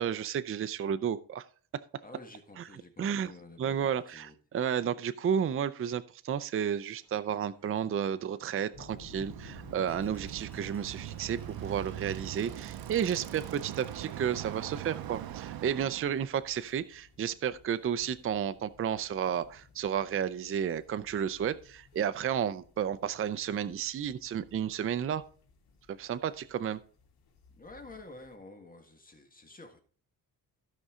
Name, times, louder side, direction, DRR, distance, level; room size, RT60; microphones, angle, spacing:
voice 1, 0.0-1.4 2.6-2.7 3.0-3.3 3.6-25.2 25.9-26.8, right 8 dB, 35° right, 12 dB, 0.5 m, -32 dB
voice 2, 2.0-4.4 27.5-29.8, left 2 dB, 20° left, 5 dB, 1.6 m, -50 dB
sound 1, 7.0-16.6, left 1 dB, 5° left, 2.4 m, -61 dB
sound 2, 8.7-28.4, left 4 dB, 75° left, 2.5 m, -57 dB
Bicycle, 8.7-16.3, right 12 dB, 70° right, 0.7 m, -42 dB
16.0 x 5.5 x 3.7 m, 0.42 s
cardioid pair, 135°, 38 cm